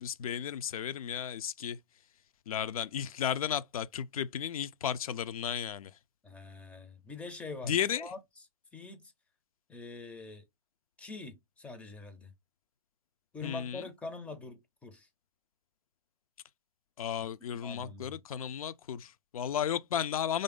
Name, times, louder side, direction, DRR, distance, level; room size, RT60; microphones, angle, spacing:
voice 1, 0.0-1.8 2.5-5.9 7.6-8.1 13.4-13.9 17.0-20.4, left 9 dB, 65° left, 0.4 m, -34 dB
voice 2, 6.2-8.2 8.7-9.1 9.7-10.4 11.0-12.3 13.3-15.1 17.6-18.2, left 3 dB, 5° left, 0.4 m, -44 dB
3.2 x 2.6 x 3.5 m
hypercardioid pair, 130°, 20 cm